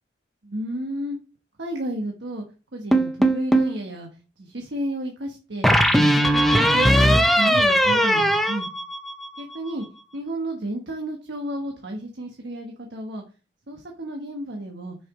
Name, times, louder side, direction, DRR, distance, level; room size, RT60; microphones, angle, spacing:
voice 1, 0.4-1.2 1.6-2.4 2.7-4.1 4.4-5.7 5.9-8.7 9.4-9.8 10.1-13.2 13.7-15.0, right 1 dB, 75° right, 2 dB, 1.2 m, -32 dB
sound 1, 2.9-3.8 5.6-9.4, equal, ahead, 0.6 m, -19 dB
6.1 x 5.9 x 3.6 m, 0.33 s
head